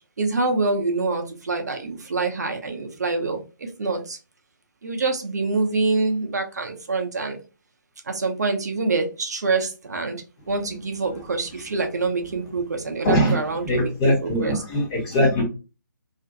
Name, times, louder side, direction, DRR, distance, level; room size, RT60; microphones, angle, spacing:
voice 1, 0.2-4.2 4.8-7.4 8.0-13.9 14.2-14.6, right 3 dB, 50° right, 5 dB, 0.5 m, -26 dB
voice 2, 13.0-13.4 13.6-15.4, equal, 20° left, 1 dB, 0.7 m, -21 dB
2.4 x 2.1 x 2.6 m, 0.31 s
figure-of-eight pair, 140°, 11 cm